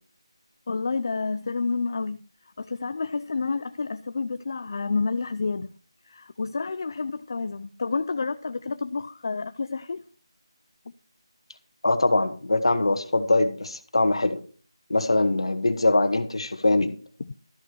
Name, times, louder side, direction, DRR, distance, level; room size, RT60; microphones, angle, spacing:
voice 1, 0.7-2.2 2.6-5.7 6.1-10.0 17.2-17.3, left 4 dB, 45° left, 0.5 m, -29 dB
voice 2, 11.8-14.4 14.9-16.9, left 2 dB, 75° left, 1.7 m, -22 dB
13.5 x 8.0 x 4.7 m
figure-of-eight pair, 165°, 3 cm